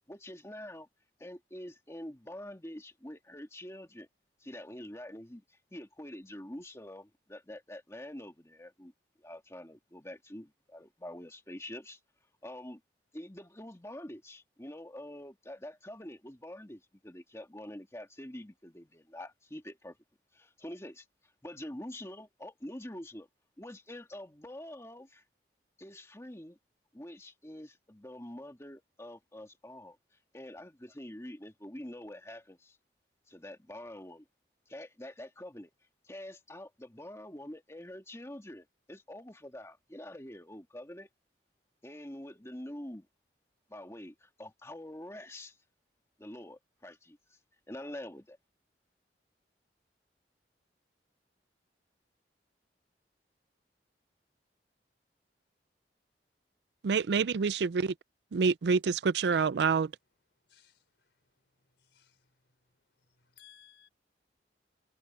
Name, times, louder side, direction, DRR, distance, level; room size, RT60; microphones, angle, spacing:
voice 1, 0.1-0.9 1.2-4.1 4.4-8.9 9.2-12.0 12.4-12.8 13.1-20.0 20.3-21.1 21.4-23.3 23.6-25.2 25.8-26.6 26.9-30.0 30.3-32.8 33.3-34.3 34.7-35.7 36.0-41.1 41.8-43.1 43.7-45.6 46.2-47.4 47.7-48.4, left 1 dB, 15° left, 1.8 m, -46 dB
voice 2, 56.8-57.9 58.3-59.9, right 5 dB, 70° right, 0.4 m, -27 dB
voice 3, 60.5-61.1 61.6-62.4 63.4-63.9, left 11 dB, 90° left, 3.9 m, -61 dB
head